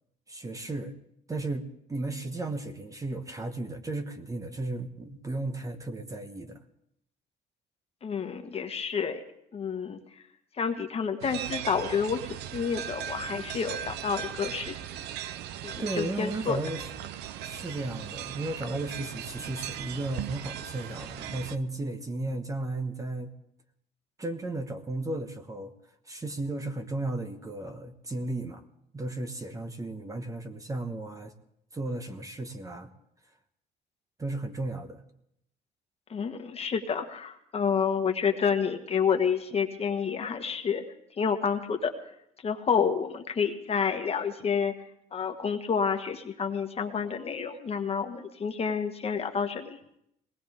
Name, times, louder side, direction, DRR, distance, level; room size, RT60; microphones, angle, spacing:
voice 1, 0.3-0.9 1.3-6.6 15.8-16.9 17.4-23.3 24.2-25.7 26.1-28.6 28.9-31.3 31.7-32.9 34.2-35.0, right 2 dB, 20° right, 7 dB, 1.1 m, -34 dB
voice 2, 8.0-9.2 9.5-10.0 10.6-12.2 12.5-14.7 15.6-16.6 36.1-40.8 41.2-41.9 42.4-44.7 45.1-49.7, left 6 dB, 35° left, 5 dB, 1.4 m, -29 dB
sound 1, 11.2-21.6, right 10 dB, 85° right, 0.6 m, -38 dB
21.0 x 18.5 x 3.6 m, 0.75 s
cardioid pair, 110°, 17 cm